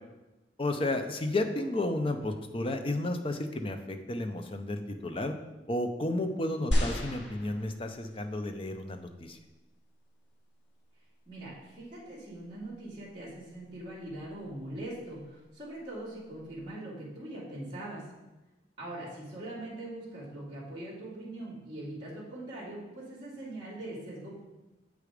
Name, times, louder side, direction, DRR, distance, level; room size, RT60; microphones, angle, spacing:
voice 1, 0.6-5.3 5.7-9.4, left 1 dB, 30° left, 6 dB, 0.6 m, -32 dB
sound 1, 6.7-8.2 9.0-9.1, equal, 75° left, 1.6 m, -31 dB
voice 2, 11.3-18.0 18.8-24.4, right 1 dB, 30° right, -10 dB, 2.7 m, -42 dB
8.0 x 4.9 x 5.0 m, 1.1 s
head